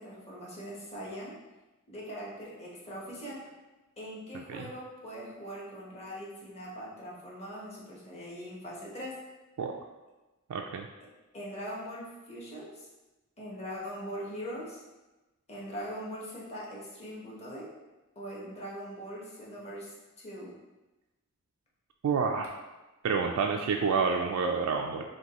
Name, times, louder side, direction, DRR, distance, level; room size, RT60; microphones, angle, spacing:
voice 1, 0.0-1.3 1.9-3.5 4.0-9.2 11.3-12.9 13.4-14.8 15.5-17.7 18.1-20.5, equal, 30° left, -5 dB, 1.0 m, -41 dB
voice 2, 10.5-10.9 22.0-22.5 23.0-25.0, right 5 dB, 85° right, 2 dB, 0.3 m, -28 dB
6.1 x 2.3 x 2.9 m, 1.1 s
head